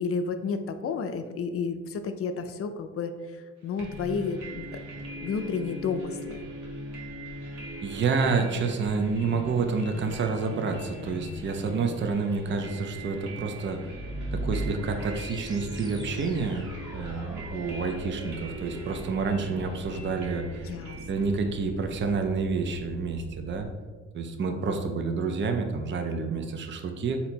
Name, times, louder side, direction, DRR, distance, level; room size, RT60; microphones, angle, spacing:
voice 1, 0.0-4.7 5.2-6.4 20.6-21.0, left 5 dB, 50° left, 8 dB, 0.5 m, -31 dB
sound 1, 3.8-22.5, right 1 dB, 85° right, 1.1 m, -41 dB
voice 2, 7.8-14.0 14.3-20.7 21.1-23.7 24.1-27.2, right 4 dB, 40° right, 5 dB, 0.5 m, -29 dB
sound 2, 13.7-23.7, right 1 dB, 15° right, 0.9 m, -40 dB
3.9 x 2.8 x 4.3 m, 1.4 s
cardioid pair, 90°, 30 cm